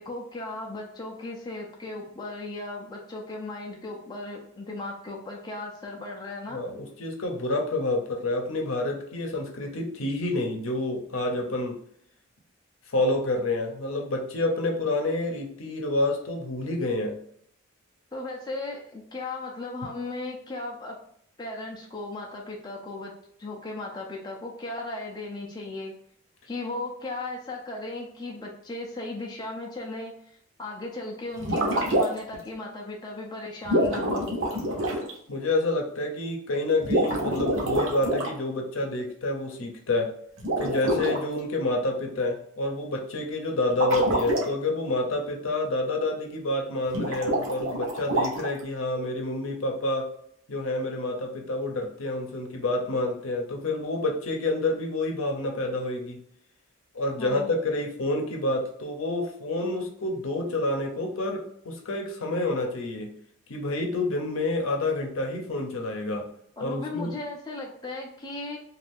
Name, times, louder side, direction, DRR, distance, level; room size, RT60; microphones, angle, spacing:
voice 1, 0.0-6.6 18.1-21.0 21.4-23.1 23.4-25.9 26.5-34.3 57.2-57.5 66.6-68.6, left 2 dB, 20° left, -1 dB, 0.4 m, -36 dB
voice 2, 6.5-11.8 12.9-17.2 35.3-40.1 40.6-50.1 50.5-56.2 56.9-63.1 63.5-66.3 66.6-67.1, left 2 dB, 70° left, 2 dB, 0.7 m, -28 dB
sound 1, 31.4-32.4 33.6-35.1 36.8-38.3 40.4-41.2 43.7-44.4 46.9-48.6, right 1 dB, 65° right, 0.8 m, -26 dB
2.6 x 2.4 x 3.4 m, 0.66 s
head